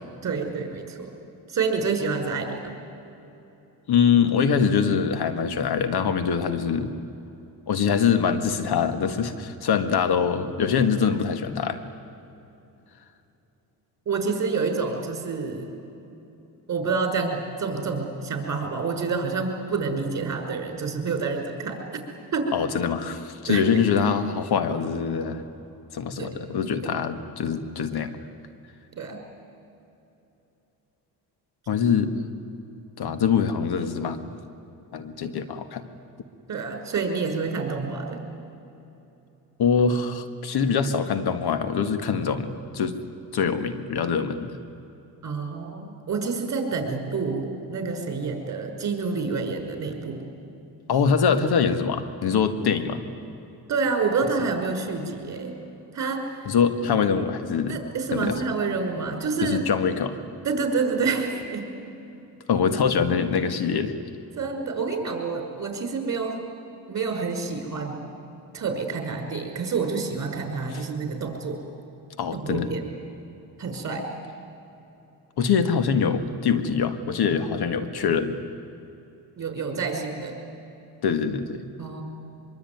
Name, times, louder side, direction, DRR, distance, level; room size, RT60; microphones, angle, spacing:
voice 1, 0.2-1.1 1.5-2.7 14.1-15.8 16.7-21.8 22.3-22.5 23.5-23.8 26.2-26.4 26.8-26.9 29.0-29.2 36.5-38.2 45.2-50.2 53.7-55.5 55.9-56.4 57.7-59.7 60.4-61.7 64.4-66.4 66.9-68.1 68.5-71.6 72.3-72.9 73.6-74.1 79.4-80.4 81.8-82.0, right 4 dB, 40° right, 4 dB, 5.7 m, -28 dB
voice 2, 3.9-6.9 7.7-11.8 22.5-25.4 25.9-28.1 31.7-32.1 33.0-34.3 34.9-35.8 39.6-43.0 43.3-44.6 50.9-53.0 56.5-57.8 58.1-58.4 59.4-60.2 62.5-63.9 72.2-72.7 75.4-78.4 81.0-81.6, left 6 dB, 65° left, 10 dB, 1.9 m, -24 dB
24.5 x 23.0 x 9.6 m, 2.9 s
cardioid pair, 105°, 40 cm